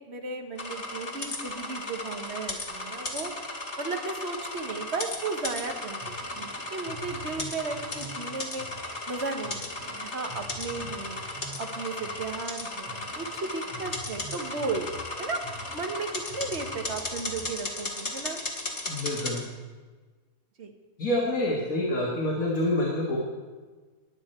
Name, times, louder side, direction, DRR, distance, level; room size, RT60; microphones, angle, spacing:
voice 1, 0.0-3.3 3.8-8.7 9.1-11.2 11.6-15.4 15.7-18.4 20.6-20.7, right 3 dB, 45° right, 4 dB, 1.4 m, -35 dB
sound 1, 0.6-19.4, left 2 dB, 45° left, 2.1 m, -36 dB
sound 2, 5.4-17.5, right 1 dB, 85° right, 2.6 m, -46 dB
voice 2, 18.9-19.4 21.0-23.2, left 1 dB, 65° left, -3 dB, 2.1 m, -27 dB
21.0 x 8.0 x 4.4 m, 1.4 s
omnidirectional pair, 1.6 m